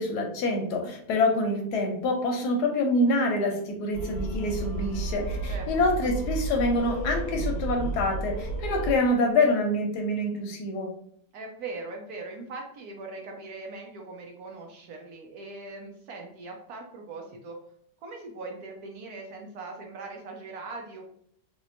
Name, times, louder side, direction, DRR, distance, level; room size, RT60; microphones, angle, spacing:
voice 1, 0.0-10.9, left 2 dB, 75° left, 2 dB, 1.1 m, -26 dB
sound 1, 3.9-9.0, right 2 dB, 5° left, 0.9 m, -32 dB
voice 2, 11.3-17.6 18.0-21.1, right 3 dB, 70° right, 1 dB, 1.0 m, -40 dB
3.5 x 2.8 x 2.5 m, 0.68 s
omnidirectional pair, 1.9 m